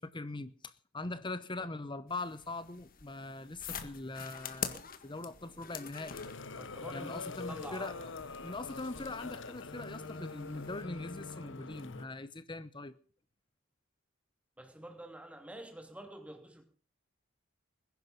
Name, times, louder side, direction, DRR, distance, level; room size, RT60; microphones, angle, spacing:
voice 1, 0.0-6.2 6.9-8.1 8.4-13.0, left 2 dB, 25° left, 0.9 m, -42 dB
sound 1, 2.1-10.8, left 7 dB, 45° left, 1.8 m, -46 dB
sound 2, 6.1-12.1, left 3 dB, 65° left, 1.3 m, -44 dB
voice 2, 6.6-7.9 14.6-16.6, right 1 dB, 5° right, 2.9 m, -48 dB
21.0 x 10.5 x 5.4 m
head